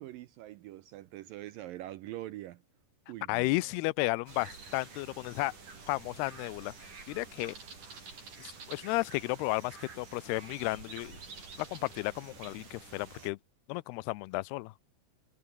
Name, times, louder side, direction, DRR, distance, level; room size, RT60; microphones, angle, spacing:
voice 1, 0.0-2.6 3.1-3.7, right 15 dB, 80° right, 2.1 m, -44 dB
voice 2, 3.3-5.5 5.9-7.5 8.4-11.2 11.6-13.4 13.7-14.7, left 22 dB, 80° left, 2.6 m, -33 dB
sound 1, 4.3-13.3, right 4 dB, 45° right, 7.3 m, -49 dB
omnidirectional pair, 4.9 m